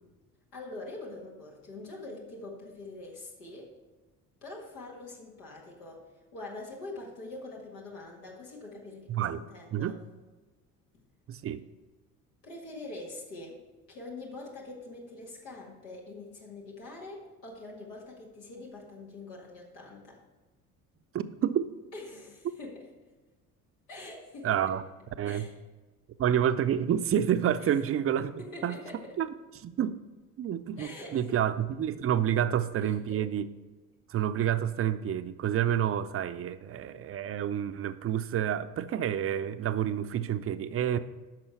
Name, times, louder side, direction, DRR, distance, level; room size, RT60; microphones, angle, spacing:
voice 1, 0.5-3.7 4.4-6.1 6.3-10.0 12.4-13.6 13.9-20.2 21.9-22.9 23.9-24.8 25.2-25.5 27.6-27.7 28.4-29.2 30.8-31.3 32.8-32.9, left 2 dB, 80° left, -2 dB, 1.9 m, -44 dB
voice 2, 9.1-9.4 9.7-10.0 11.3-11.6 21.1-21.7 24.4-24.8 25.2-25.5 26.2-28.3 28.6-28.8 29.2-29.3 29.6-30.0 30.4-33.5 34.1-41.0, right 10 dB, 30° right, 12 dB, 0.6 m, -29 dB
10.5 x 6.2 x 4.5 m, 1.2 s
figure-of-eight pair, 55°, 48 cm